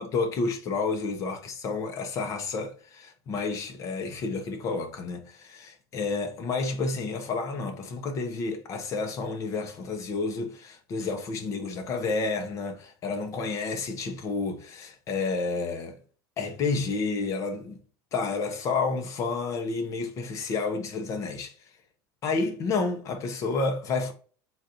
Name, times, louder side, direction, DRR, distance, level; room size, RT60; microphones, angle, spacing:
voice 1, 0.0-16.0 16.4-17.8 18.1-21.5 22.2-24.1, left 4 dB, 30° left, 0.7 m, -30 dB
4.0 x 2.5 x 4.1 m
cardioid pair, 170°, 11 cm